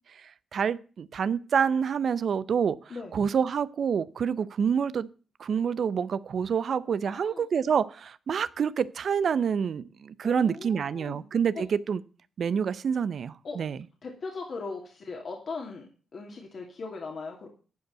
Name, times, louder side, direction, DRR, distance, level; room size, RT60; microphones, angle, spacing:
voice 1, 0.5-2.8 3.1-5.1 5.4-12.0 12.4-13.8, right 7 dB, 65° right, 0.6 m, -27 dB
voice 2, 7.0-7.4 10.2-11.3 11.5-11.6 13.4-13.6 14.0-17.5, left 4 dB, 60° left, 2.5 m, -39 dB
11.5 x 5.3 x 8.0 m
hypercardioid pair, 45°, 0 cm